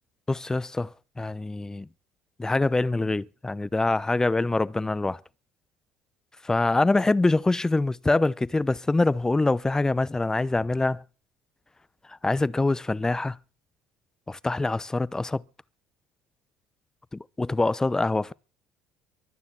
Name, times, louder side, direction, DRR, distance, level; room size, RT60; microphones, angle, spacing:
voice 1, 0.3-1.9 2.4-5.2 6.4-11.0 12.2-13.4 14.3-15.4 17.4-18.3, left 2 dB, 15° left, 0.9 m, -24 dB
23.5 x 9.5 x 6.1 m
hypercardioid pair, 60°, 4 cm